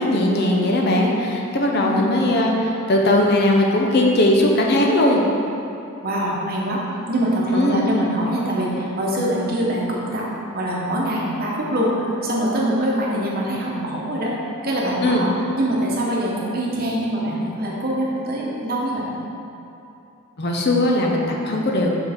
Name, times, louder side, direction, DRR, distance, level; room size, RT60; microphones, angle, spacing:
voice 1, 0.0-5.2 7.5-7.8 15.0-15.3 20.4-21.9, left 1 dB, 50° left, 0 dB, 0.6 m, -19 dB
voice 2, 1.8-2.2 6.0-10.2 10.5-14.3 14.6-19.1, right 1 dB, 45° right, -4 dB, 1.0 m, -24 dB
5.7 x 5.5 x 3.5 m, 2.8 s
head